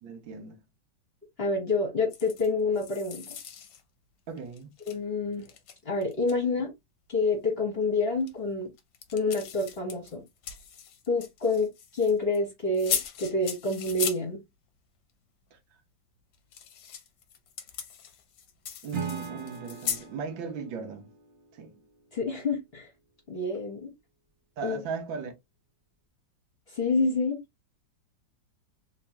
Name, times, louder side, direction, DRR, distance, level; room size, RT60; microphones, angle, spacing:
voice 1, 0.0-0.6 4.3-4.7 15.5-15.6 18.8-21.1 21.5-21.8 24.6-25.3, right 5 dB, 80° right, 1.6 m, -37 dB
voice 2, 1.4-3.3 4.9-5.5 5.8-6.7 7.1-8.7 9.1-10.2 11.1-14.4 22.1-22.9 23.3-23.9 24.6-24.8 26.7-27.4, left 3 dB, 40° left, 1.2 m, -28 dB
sound 1, 2.1-2.5 2.7-3.8 4.4-5.0 5.3-6.4 8.2-8.3 8.8-12.4 12.7-14.2 16.3-20.1, left 8 dB, 65° left, 1.1 m, -37 dB
Acoustic guitar / Strum, 18.9-22.1, right 6 dB, 60° right, 0.6 m, -40 dB
3.5 x 2.9 x 2.8 m
omnidirectional pair, 2.1 m